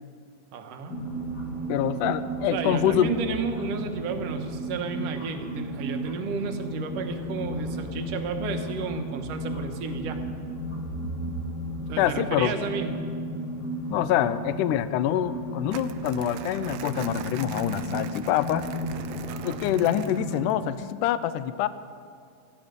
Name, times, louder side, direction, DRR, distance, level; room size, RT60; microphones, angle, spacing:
voice 1, 0.5-1.0 2.5-10.2 11.9-13.0 19.2-19.6, right 5 dB, 65° right, 5 dB, 1.6 m, -32 dB
sound 1, 0.9-20.7, right 1 dB, 65° left, 0.7 m, -34 dB
voice 2, 1.7-3.2 12.0-12.5 13.9-18.7 19.5-21.7, left 11 dB, 85° left, 13 dB, 1.8 m, -25 dB
Crumpling crinkling, 15.7-20.6, right 11 dB, 90° right, 2.5 m, -42 dB
20.0 x 13.5 x 5.2 m, 2.4 s
omnidirectional pair, 4.2 m